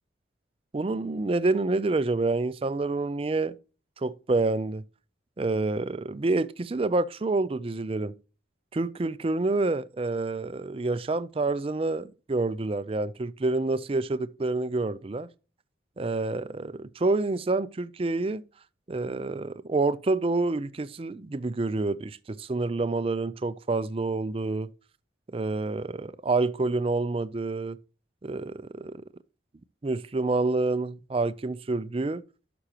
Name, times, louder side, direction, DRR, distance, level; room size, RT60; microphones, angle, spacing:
voice 1, 0.7-3.6 4.0-4.8 5.4-8.1 8.7-15.3 16.0-18.4 18.9-24.7 25.3-27.8 28.2-29.0 29.8-32.2, right 3 dB, 30° right, 0.4 m, -28 dB
11.5 x 6.1 x 2.9 m
head